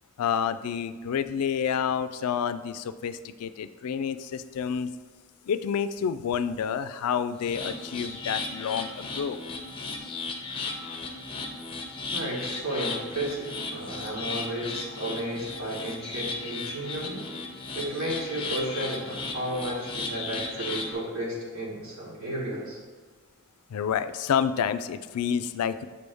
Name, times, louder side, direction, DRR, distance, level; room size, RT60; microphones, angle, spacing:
voice 1, 0.2-4.9 5.5-9.4 23.7-25.9, left 7 dB, 85° left, 13 dB, 0.3 m, -29 dB
sound 1, 7.4-20.9, left 3 dB, 25° left, 0.6 m, -35 dB
voice 2, 12.1-17.2 17.7-22.8, right 1 dB, 75° right, -5 dB, 2.1 m, -33 dB
6.7 x 3.4 x 5.3 m, 1.4 s
head